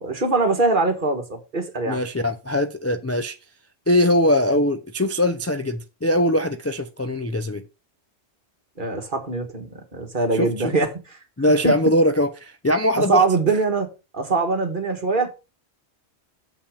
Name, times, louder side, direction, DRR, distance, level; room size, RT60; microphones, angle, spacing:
voice 1, 0.0-2.0 8.8-10.9 11.6-11.7 13.1-13.9 14.1-15.3, right 3 dB, 50° right, 1.7 m, -22 dB
voice 2, 1.9-3.4 3.9-7.6 10.3-10.7 11.4-13.2, left 1 dB, 20° left, 0.4 m, -21 dB
7.0 x 5.7 x 5.0 m
omnidirectional pair, 1.1 m